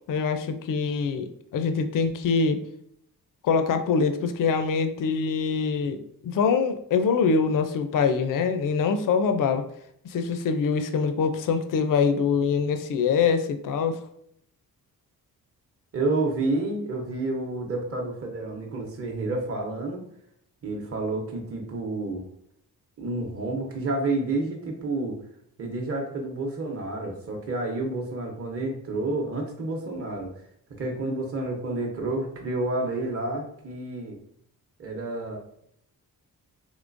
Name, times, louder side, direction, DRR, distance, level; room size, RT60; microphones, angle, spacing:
voice 1, 0.1-2.6 3.4-9.6 10.0-14.0, left 5 dB, 60° left, 9 dB, 0.5 m, -24 dB
voice 2, 15.9-20.0 20.6-22.3 23.0-25.2 25.6-30.3 30.8-34.2 34.8-35.4, right 2 dB, 40° right, 0 dB, 0.8 m, -29 dB
3.7 x 3.1 x 2.5 m, 0.71 s
cardioid pair, 70°, 37 cm